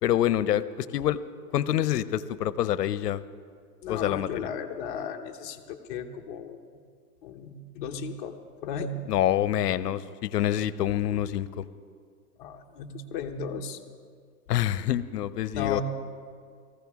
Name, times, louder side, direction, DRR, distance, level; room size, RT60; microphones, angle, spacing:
voice 1, 0.0-1.2 1.5-3.2 3.9-4.3 9.1-11.6 14.5-15.8, left 11 dB, 75° left, 16 dB, 0.7 m, -26 dB
voice 2, 3.8-6.6 7.2-8.4 8.6-9.0 12.4-13.8 15.5-15.8, left 6 dB, 30° left, 4 dB, 0.9 m, -35 dB
19.0 x 15.0 x 3.6 m, 2.1 s
hypercardioid pair, 155°, 47 cm